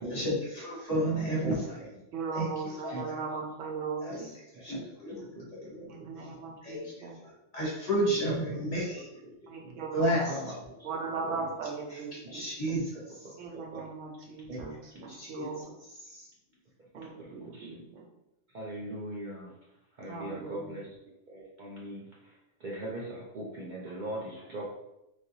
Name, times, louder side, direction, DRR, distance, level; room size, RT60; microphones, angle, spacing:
voice 1, 0.1-1.5 2.3-2.9 4.0-4.3 4.6-5.2 5.6-5.8 6.6-7.1 7.5-9.0 9.9-10.3 11.9-13.0 15.2-15.6 16.0-16.3, right 1 dB, 35° left, -5 dB, 0.9 m, -31 dB
voice 2, 0.9-1.9 2.9-3.1 4.5-4.8 5.2-5.7 6.0-6.4 8.1-8.6 9.2-9.8 10.3-10.9 11.2-11.5 13.5-13.9 14.5-14.6 14.9-15.2 16.9-17.8 18.5-19.6 19.9-24.6, right 1 dB, 55° right, -4 dB, 0.5 m, -41 dB
voice 3, 2.1-4.3 5.9-7.2 9.5-10.3 10.8-12.4 13.4-14.7 15.0-15.6 16.9-18.0 20.1-20.6, right 4 dB, 70° right, -1 dB, 1.1 m, -38 dB
3.3 x 2.5 x 2.7 m, 0.88 s
omnidirectional pair, 1.4 m